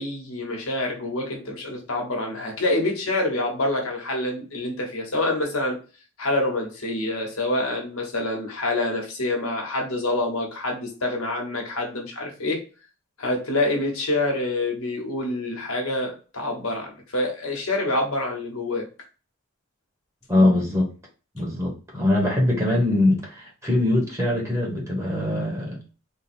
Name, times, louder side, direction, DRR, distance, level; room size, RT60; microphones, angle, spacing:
voice 1, 0.0-5.8 6.2-12.6 13.2-18.8, left 2 dB, 85° left, 1 dB, 1.3 m, -26 dB
voice 2, 20.3-20.9 21.3-25.8, left 1 dB, 15° right, -3 dB, 1.4 m, -22 dB
3.7 x 2.4 x 4.3 m, 0.35 s
head